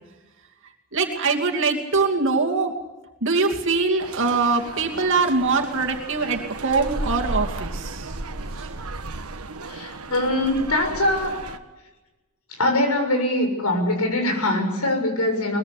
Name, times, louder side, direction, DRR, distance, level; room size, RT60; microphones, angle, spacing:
voice 1, 0.9-2.7 3.2-8.1 8.5-8.8, right 4 dB, 60° right, 1 dB, 2.7 m, -23 dB
sound 1, 4.0-11.6, right 2 dB, 75° right, 1.5 m, -34 dB
voice 2, 9.7-11.4 12.6-15.6, left 1 dB, 90° left, 4 dB, 7.0 m, -22 dB
22.5 x 21.5 x 8.2 m, 1.1 s
head